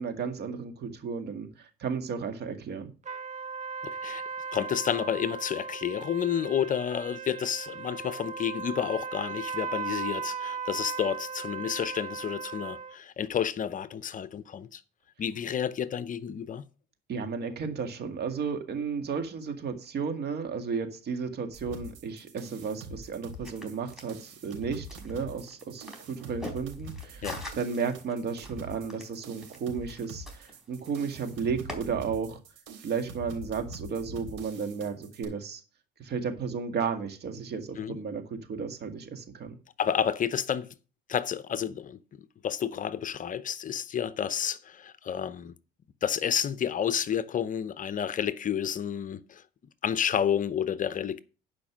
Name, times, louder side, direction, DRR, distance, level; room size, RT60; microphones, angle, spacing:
voice 1, 0.0-2.9 17.1-27.2 27.5-32.4 32.8-35.6 36.0-39.5, right 5 dB, 55° right, 2.0 m, -33 dB
sound 1, 3.0-12.9, right 5 dB, 35° right, 0.7 m, -37 dB
voice 2, 3.8-4.2 4.5-14.8 15.2-16.6 27.2-27.4 37.8-38.0 39.8-40.7 41.1-42.0 42.4-45.5 46.0-49.4 49.8-51.2, left 8 dB, 40° left, 0.7 m, -30 dB
sound 2, 21.5-35.2, right 1 dB, 75° right, 3.6 m, -44 dB
sound 3, 23.2-31.8, left 1 dB, ahead, 3.9 m, -46 dB
11.0 x 5.2 x 6.2 m
supercardioid pair, 95°, 20 cm